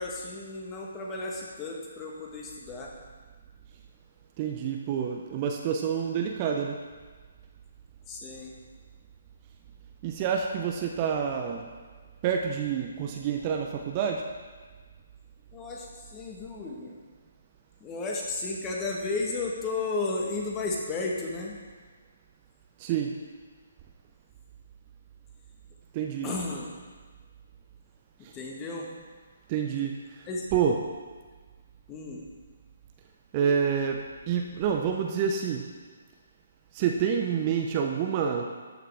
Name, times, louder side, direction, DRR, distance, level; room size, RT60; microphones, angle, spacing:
voice 1, 0.0-2.9 8.1-8.5 15.5-17.0 17.8-21.6 26.2-26.7 28.2-28.9 30.3-30.5 31.9-32.2, left 3 dB, 20° left, -1 dB, 1.4 m, -33 dB
voice 2, 4.4-6.8 10.0-11.7 12.2-14.3 22.8-23.1 25.9-26.3 28.2-28.3 29.5-30.2 30.5-30.7 33.3-35.6 36.7-38.5, right 7 dB, 30° right, 2 dB, 0.7 m, -28 dB
13.5 x 5.9 x 3.5 m, 1.5 s
figure-of-eight pair, 135°, 0 cm